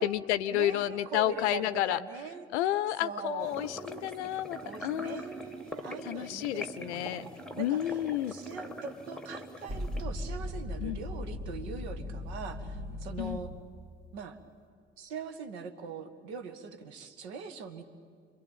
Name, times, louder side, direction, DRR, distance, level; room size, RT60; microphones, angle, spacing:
voice 1, 0.0-2.0 2.5-5.2 6.0-7.3 7.6-8.3 10.8-11.0 13.2-13.4, left 13 dB, 70° left, 16 dB, 0.6 m, -31 dB
voice 2, 0.5-2.5 3.0-4.4 4.6-8.0 8.3-13.5 14.1-14.4 15.0-17.8, right 5 dB, 65° right, 8 dB, 1.9 m, -42 dB
sound 1, 3.4-10.0, equal, ahead, 1.6 m, -43 dB
sound 2, 9.7-13.7, left 1 dB, 45° right, 3.8 m, -38 dB
28.5 x 22.0 x 9.1 m, 2.1 s
figure-of-eight pair, 50°, 35 cm